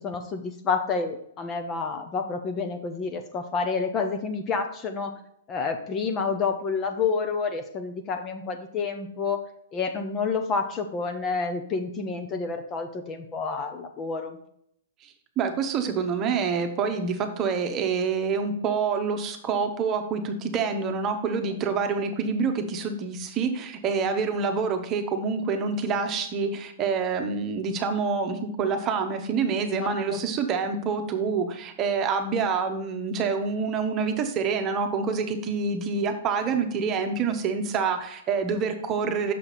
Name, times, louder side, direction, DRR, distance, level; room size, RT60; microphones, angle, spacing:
voice 1, 0.0-5.1 5.5-9.4 9.7-14.4 29.7-30.2, left 5 dB, 25° left, 6 dB, 1.0 m, -29 dB
voice 2, 15.4-39.3, right 5 dB, 30° right, 5 dB, 1.1 m, -27 dB
6.7 x 5.7 x 4.1 m, 0.71 s
hypercardioid pair, 120°, 0 cm